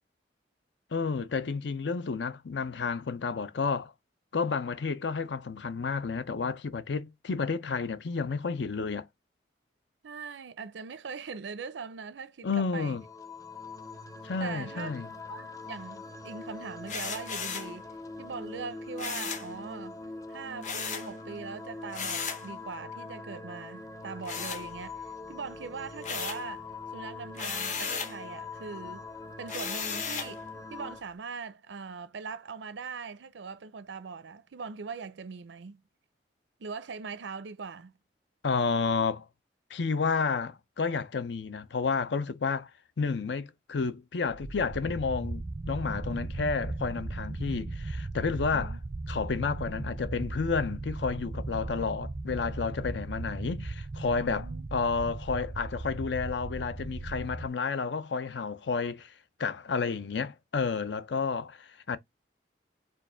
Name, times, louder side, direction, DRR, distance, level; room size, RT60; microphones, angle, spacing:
voice 1, 0.9-3.9 4.3-9.1 12.4-13.0 14.2-15.1 38.4-39.2 39.7-42.7 43.0-48.8 49.1-59.1 59.4-62.0, left 5 dB, 75° left, 0.6 m, -31 dB
voice 2, 10.0-13.0 14.4-14.9 15.3-17.9 18.2-20.0 20.3-26.7 26.9-29.1 29.4-35.8 36.6-37.9 48.5-48.8 54.2-54.7, right 5 dB, 80° right, 0.5 m, -41 dB
sound 1, 12.9-31.0, left 3 dB, 20° left, 0.6 m, -43 dB
sound 2, 16.9-17.7 19.0-19.5 20.6-21.1 21.9-22.5 24.2-25.1 25.5-26.5 27.3-28.2 29.5-30.4, left 6 dB, 40° left, 0.9 m, -35 dB
sound 3, 44.3-57.5, right 2 dB, 25° right, 0.3 m, -37 dB
4.6 x 2.5 x 4.3 m
head